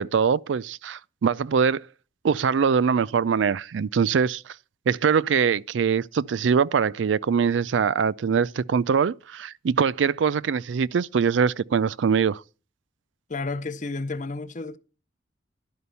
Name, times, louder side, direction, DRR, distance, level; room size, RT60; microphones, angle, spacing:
voice 1, 0.0-1.9 2.2-4.5 4.9-12.4, right 6 dB, 80° right, 0.4 m, -23 dB
voice 2, 13.3-14.8, left 3 dB, 40° left, 0.7 m, -31 dB
11.5 x 5.1 x 6.8 m
head